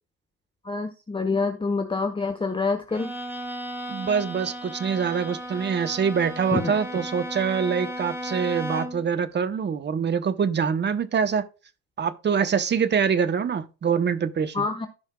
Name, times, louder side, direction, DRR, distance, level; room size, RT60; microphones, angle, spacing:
voice 1, 0.6-3.1 6.5-6.7 14.5-14.9, left 4 dB, 10° left, 1.1 m, -26 dB
Bowed string instrument, 2.9-9.1, equal, 5° right, 1.9 m, -35 dB
voice 2, 3.9-11.4 12.0-14.7, right 6 dB, 20° right, 1.0 m, -25 dB
16.0 x 5.5 x 2.3 m
figure-of-eight pair, 70°, 49 cm